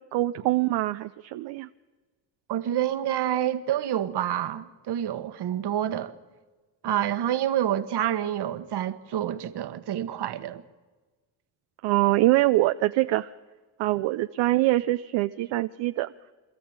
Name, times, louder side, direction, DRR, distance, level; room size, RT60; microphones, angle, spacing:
voice 1, 0.1-1.7 11.8-13.3 13.8-16.1, right 18 dB, 75° right, 0.7 m, -24 dB
voice 2, 2.5-6.1 6.8-10.6, right 11 dB, 60° right, 1.4 m, -28 dB
25.5 x 13.5 x 8.8 m
supercardioid pair, 65°, 44 cm